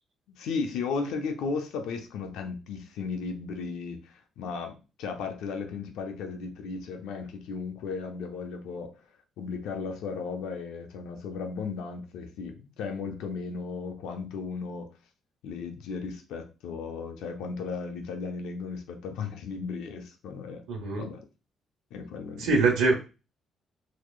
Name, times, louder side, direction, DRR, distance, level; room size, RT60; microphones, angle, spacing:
voice 1, 0.4-8.9 9.4-14.9 15.4-20.6 20.9-21.2 21.9-22.5, left 5 dB, 90° left, 0.7 m, -35 dB
voice 2, 20.7-21.1 22.4-22.9, right 3 dB, 90° right, 1.1 m, -23 dB
4.1 x 3.1 x 2.4 m
cardioid pair, 90°, 0 cm